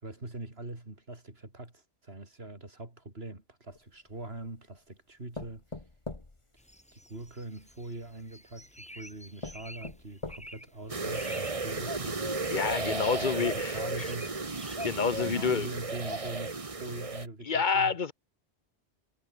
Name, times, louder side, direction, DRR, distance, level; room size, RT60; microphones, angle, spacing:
voice 1, 0.0-5.8 6.9-8.7 8.9-12.3 12.8-14.5 15.2-18.0, right 2 dB, 65° right, 4.7 m, -43 dB
sound 1, 3.7-4.6 5.3-7.3 8.3-8.4 9.0-9.1 9.4-10.8 11.3-11.4 11.7-11.8, left 2 dB, 30° left, 1.8 m, -43 dB
sound 2, 6.7-7.9 8.3-9.9 10.3-10.6 11.0-11.5 11.8-13.1 13.4-15.5 16.1-16.2, equal, 5° left, 7.2 m, -42 dB
sound 3, 10.9-17.3, right 3 dB, 30° right, 1.4 m, -34 dB
voice 2, 12.5-14.1 14.8-15.7 17.5-18.1, left 5 dB, 50° left, 1.0 m, -28 dB
omnidirectional pair, 1.1 m